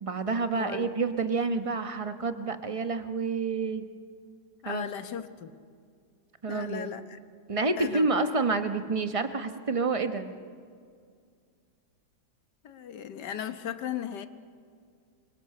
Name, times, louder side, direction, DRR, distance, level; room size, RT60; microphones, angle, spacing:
voice 1, 0.0-3.9 4.6-4.9 6.4-6.9 7.5-10.3, right 4 dB, 25° right, 8 dB, 0.8 m, -28 dB
voice 2, 0.5-0.9 4.6-5.5 6.5-7.2 7.8-8.1 12.6-14.3, left 9 dB, 70° left, 10 dB, 1.6 m, -37 dB
26.5 x 24.0 x 6.6 m, 2.2 s
omnidirectional pair, 2.0 m